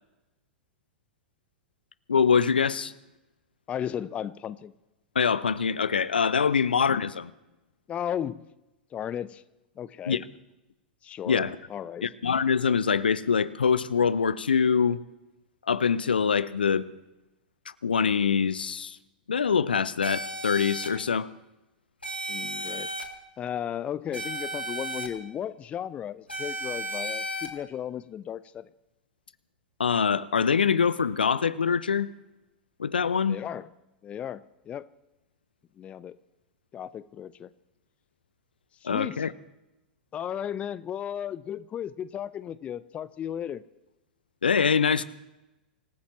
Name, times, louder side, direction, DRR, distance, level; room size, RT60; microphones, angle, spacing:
voice 1, 2.1-2.9 5.1-7.3 10.1-10.2 11.3-11.6 12.0-15.0 15.7-16.9 17.8-19.0 19.3-21.3 29.8-32.1 32.8-33.4 38.8-39.3 44.4-45.0, left 6 dB, 75° left, 17 dB, 0.7 m, -24 dB
voice 2, 3.7-4.7 7.9-8.5 8.9-9.4 9.8-10.2 11.0-11.4 11.7-12.0 22.3-22.9 23.4-28.7 33.3-33.7 34.0-34.9 35.8-36.2 36.7-37.5 38.8-39.3 40.1-43.6, left 9 dB, 25° left, 17 dB, 0.6 m, -35 dB
sound 1, 20.0-20.9 22.0-23.0 24.1-25.1 26.3-27.5, right 1 dB, 90° left, 2.0 m, -34 dB
26.0 x 15.5 x 3.1 m, 0.96 s
figure-of-eight pair, 95°, 5 cm